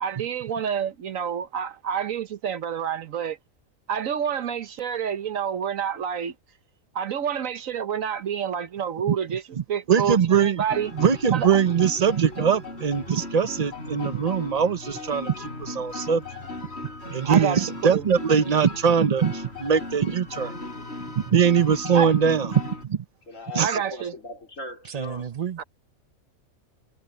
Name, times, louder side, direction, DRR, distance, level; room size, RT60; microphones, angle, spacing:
voice 1, 0.0-3.4 3.9-6.3 6.9-9.4 9.7-10.9 11.3-11.5 17.2-18.0 21.9-22.1 23.6-24.1 25.6-25.7, right 8 dB, 70° right, 1.3 m, -28 dB
voice 2, 9.5-10.6 10.9-16.2 17.1-20.6 21.2-23.0 23.5-23.8 24.9-25.6, right 7 dB, 40° right, 0.6 m, -22 dB
sound 1, 10.7-22.8, left 2 dB, 50° left, 4.8 m, -37 dB
voice 3, 23.3-25.3, left 2 dB, 65° left, 4.4 m, -39 dB
omnidirectional pair, 1.4 m